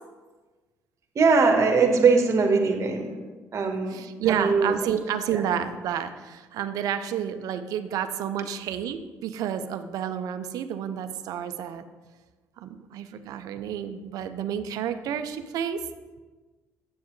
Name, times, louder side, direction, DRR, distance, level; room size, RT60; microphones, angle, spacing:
voice 1, 1.1-3.1 3.5-4.0 4.4-4.7 5.3-5.4, right 4 dB, 50° right, 4 dB, 1.2 m, -21 dB
voice 2, 3.9-11.8 12.6-15.8, right 9 dB, 70° right, 10 dB, 0.5 m, -30 dB
7.9 x 7.2 x 3.1 m, 1.3 s
supercardioid pair, 70°, 6 cm